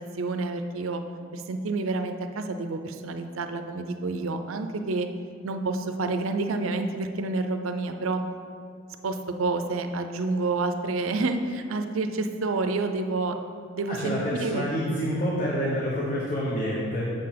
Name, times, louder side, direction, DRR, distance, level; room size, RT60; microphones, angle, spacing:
voice 1, 0.1-1.0 1.3-5.1 5.4-8.2 9.0-13.4 13.7-14.6, right 3 dB, 80° right, 7 dB, 0.5 m, -29 dB
voice 2, 13.9-17.1, equal, 35° left, -6 dB, 1.0 m, -28 dB
7.1 x 5.7 x 5.1 m, 2.4 s
head